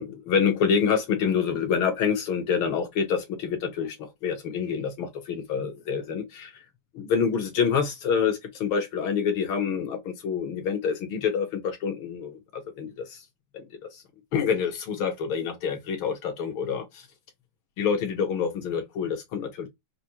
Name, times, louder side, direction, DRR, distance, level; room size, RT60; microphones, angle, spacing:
voice 1, 0.0-6.5 6.9-13.2 13.5-13.6 13.9-14.0 14.3-17.1 17.8-19.7, left 6 dB, 70° left, 1.3 m, -27 dB
6.0 x 2.4 x 2.8 m
omnidirectional pair, 3.3 m